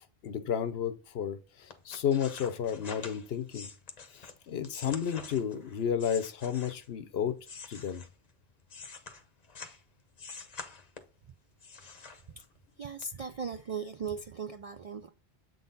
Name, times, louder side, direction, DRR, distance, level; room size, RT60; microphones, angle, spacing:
voice 1, 0.2-3.7 4.1-7.4 7.7-8.0, left 8 dB, 70° left, 0.9 m, -32 dB
sound 1, 1.7-7.0 7.4-9.8 10.2-11.2 11.6-12.6 13.0-13.1, left 5 dB, 40° left, 0.8 m, -46 dB
voice 2, 11.8-12.4 12.8-15.1, right 5 dB, 60° right, 0.4 m, -39 dB
7.8 x 3.9 x 4.0 m
omnidirectional pair, 1.1 m